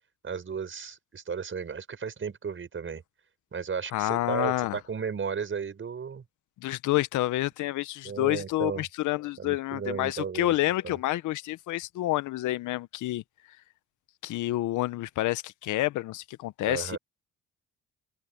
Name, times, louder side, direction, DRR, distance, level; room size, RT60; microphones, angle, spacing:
voice 1, 0.2-3.0 3.5-6.2 8.0-8.8 9.4-10.5 10.8-11.0 16.7-17.0, right 6 dB, 40° right, 6.2 m, -34 dB
voice 2, 3.9-4.8 6.6-13.2 14.2-17.0, left 16 dB, 80° left, 0.7 m, -28 dB
cardioid pair, 90°, 30 cm